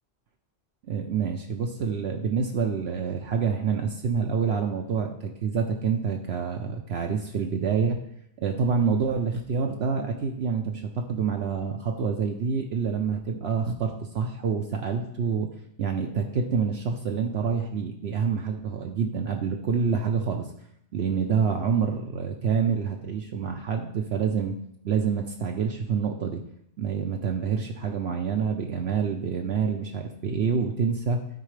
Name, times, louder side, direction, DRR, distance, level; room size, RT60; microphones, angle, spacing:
voice 1, 0.9-8.0 8.4-15.5 15.8-20.5 20.9-24.5 24.8-26.4 26.8-31.2, right 6 dB, 65° right, 2 dB, 0.9 m, -27 dB
12.5 x 4.5 x 3.2 m, 0.74 s
omnidirectional pair, 1.2 m